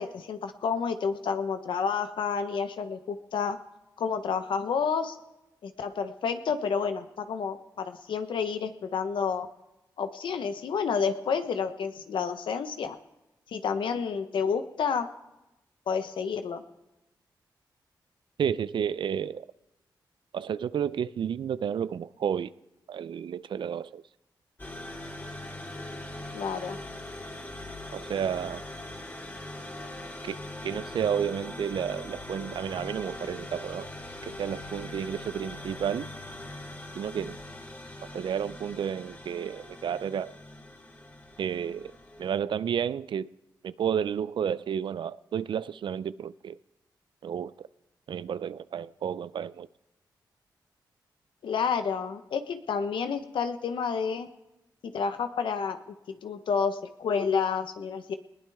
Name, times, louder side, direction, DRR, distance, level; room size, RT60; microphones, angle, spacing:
voice 1, 0.0-3.6 4.0-5.2 5.6-9.5 10.0-13.0 13.5-15.1 15.9-16.6 26.3-26.8 51.4-54.3 54.8-55.8 56.2-58.1, left 6 dB, 85° left, 1.1 m, -30 dB
voice 2, 18.4-19.5 20.3-22.5 22.9-24.0 27.9-28.6 30.2-30.4 30.6-33.9 34.3-36.1 37.0-37.4 38.1-40.3 41.4-41.9 42.2-43.3 43.6-46.5 47.2-47.7 48.1-49.7, right 8 dB, 75° right, 0.5 m, -31 dB
sound 1, 24.6-42.4, left 1 dB, 25° left, 2.6 m, -41 dB
20.0 x 18.5 x 3.6 m
cardioid pair, 50°, 8 cm